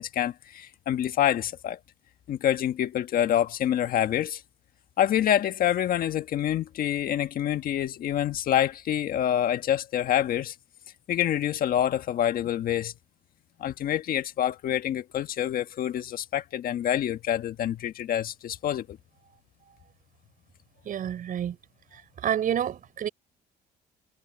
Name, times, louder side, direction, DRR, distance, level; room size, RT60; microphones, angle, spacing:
voice 1, 0.0-1.8 2.3-4.4 5.0-10.5 11.1-12.9 13.6-19.0, left 11 dB, 60° left, 1.5 m, -26 dB
voice 2, 20.9-21.6 22.2-23.1, right 9 dB, 55° right, 5.7 m, -28 dB
cardioid pair, 110°, 17 cm